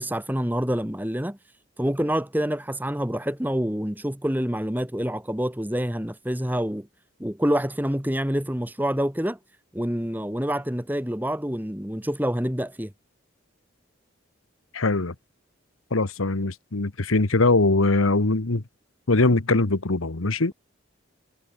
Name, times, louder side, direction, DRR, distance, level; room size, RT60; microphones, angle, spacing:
voice 1, 0.0-1.4 1.8-6.9 7.2-9.4 9.7-12.9, equal, 10° right, 1.5 m, -27 dB
voice 2, 14.7-15.1 15.9-18.6 19.1-20.5, left 2 dB, 90° left, 1.4 m, -22 dB
head